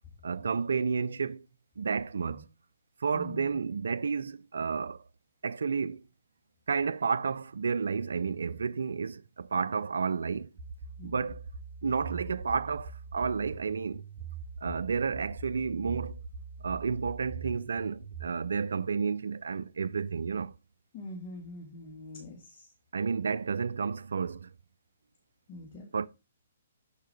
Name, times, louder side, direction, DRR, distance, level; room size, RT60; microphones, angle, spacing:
voice 1, 0.2-1.5 1.8-2.5 3.0-5.0 5.4-6.1 6.7-10.5 11.0-11.4 11.8-14.0 14.6-16.2 16.6-20.5 22.9-24.5 25.9-26.1, right 5 dB, 75° right, 0.3 m, -31 dB
voice 2, 3.1-3.6 11.0-11.2 20.9-22.7 25.5-25.9, left 2 dB, 30° left, 1.5 m, -45 dB
sound 1, 10.6-18.3, right 5 dB, 20° right, 2.2 m, -43 dB
6.5 x 4.5 x 3.3 m
hypercardioid pair, 130°, 0 cm